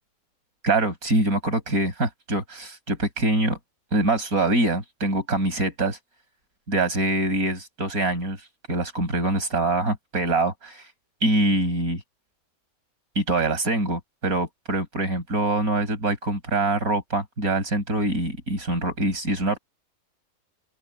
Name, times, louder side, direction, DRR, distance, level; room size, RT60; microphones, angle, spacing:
voice 1, 0.6-3.6 3.9-6.0 6.7-8.4 8.7-10.9 11.2-12.0 13.1-19.6, right 2 dB, 80° right, 6.5 m, -24 dB
open air
omnidirectional pair, 1.5 m